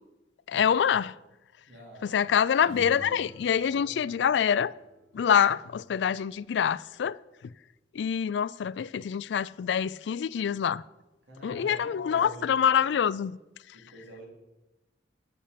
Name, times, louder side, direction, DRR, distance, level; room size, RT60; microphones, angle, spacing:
voice 1, 0.5-1.1 2.1-4.7 5.1-7.2 8.0-10.8 11.4-13.4, left 8 dB, 75° left, 0.3 m, -25 dB
voice 2, 1.7-2.3 3.7-4.2 9.2-9.3 11.3-12.8 13.7-14.2, right 1 dB, 90° right, 3.7 m, -47 dB
sound 1, 2.5-6.3, left 1 dB, 40° right, 3.8 m, -50 dB
8.5 x 7.1 x 8.4 m
head